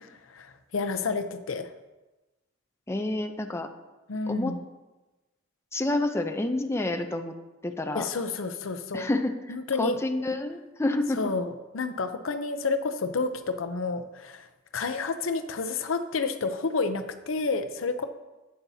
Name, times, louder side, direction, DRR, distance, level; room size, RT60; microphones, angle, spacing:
voice 1, 0.3-1.7 4.1-4.6 7.9-9.1 9.5-10.0 11.1-14.5 14.7-18.1, left 4 dB, 80° left, 8 dB, 0.6 m, -30 dB
voice 2, 2.9-3.7 4.3-4.5 5.7-7.3 7.6-8.1 8.9-11.2, left 2 dB, 15° left, 5 dB, 0.5 m, -28 dB
11.0 x 8.6 x 2.8 m, 1.1 s
head